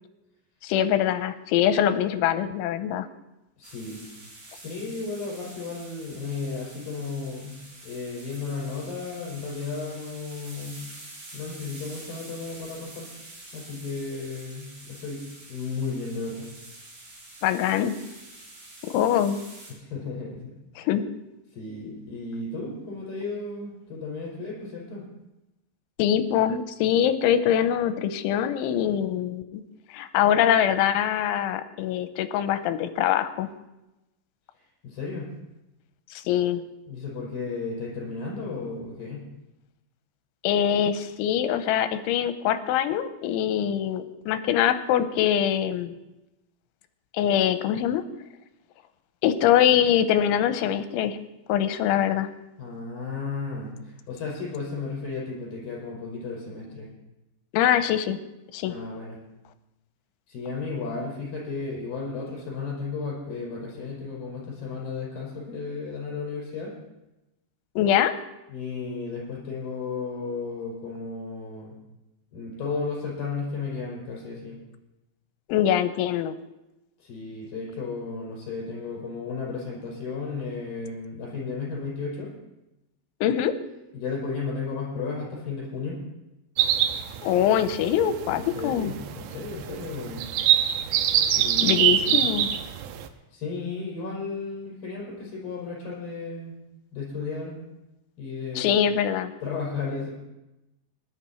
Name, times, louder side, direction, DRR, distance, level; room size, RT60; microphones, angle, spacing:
voice 1, 0.6-3.1 17.4-17.9 18.8-19.4 20.8-21.0 26.0-29.6 29.9-33.5 36.1-36.6 40.4-45.9 47.1-48.0 49.2-51.2 51.5-52.3 57.5-58.2 58.5-58.7 67.8-68.1 75.5-76.3 83.2-83.5 87.2-88.9 91.6-92.5 98.6-99.3, left 10 dB, 85° left, 11 dB, 3.2 m, -23 dB
voice 2, 3.6-4.0 4.5-7.6 7.8-10.9 11.3-13.1 13.5-16.5 19.7-20.5 21.5-25.0 34.8-35.3 36.9-39.2 52.6-56.9 58.7-59.2 60.3-66.7 68.5-71.7 72.3-74.6 77.0-82.3 83.9-86.0 88.3-90.2 91.4-92.3 93.3-96.6 96.9-97.6 98.2-98.7 99.4-100.1, left 4 dB, 50° left, -3 dB, 7.0 m, -34 dB
sound 1, 3.6-19.7, right 2 dB, 40° right, 4.6 m, -47 dB
sound 2, 86.6-93.1, right 10 dB, 80° right, 2.8 m, -25 dB
19.5 x 11.5 x 4.4 m, 0.96 s
omnidirectional pair, 5.5 m